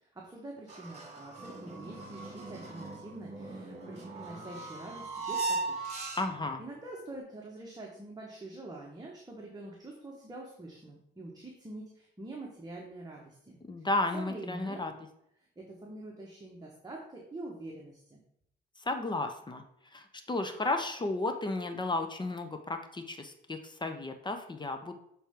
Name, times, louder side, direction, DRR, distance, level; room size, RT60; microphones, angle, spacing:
voice 1, 0.0-5.8 6.6-13.9 14.1-14.9 15.4-18.2, right 2 dB, 20° right, -2 dB, 1.3 m, -45 dB
sound 1, 0.7-6.6, right 3 dB, 35° right, 1.9 m, -38 dB
voice 2, 6.1-6.6 13.7-14.9 18.8-19.6 19.9-24.9, left 2 dB, 20° left, 6 dB, 0.8 m, -33 dB
7.2 x 4.3 x 3.6 m, 0.74 s
cardioid pair, 90°, 20 cm